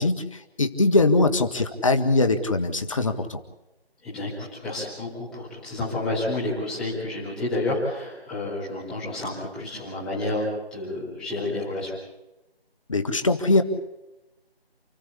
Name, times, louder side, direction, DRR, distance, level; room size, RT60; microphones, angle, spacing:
voice 1, 0.0-3.4 12.9-13.6, left 2 dB, 30° left, 9 dB, 1.6 m, -22 dB
voice 2, 4.0-11.9, left 2 dB, ahead, -9 dB, 4.4 m, -30 dB
29.0 x 15.0 x 8.5 m, 0.99 s
figure-of-eight pair, 165°, 32 cm